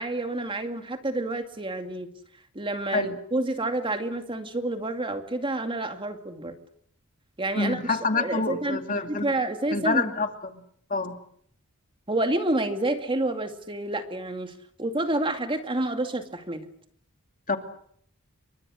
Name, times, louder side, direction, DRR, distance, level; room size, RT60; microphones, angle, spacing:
voice 1, 0.0-2.1 2.5-6.5 7.4-7.8 8.1-10.1 12.1-14.5 14.8-16.7, right 2 dB, 25° right, 6 dB, 2.4 m, -29 dB
voice 2, 7.5-9.3 9.7-10.6 10.9-11.2 17.5-17.6, left 3 dB, 40° left, 6 dB, 2.6 m, -27 dB
29.5 x 24.5 x 6.4 m, 0.65 s
head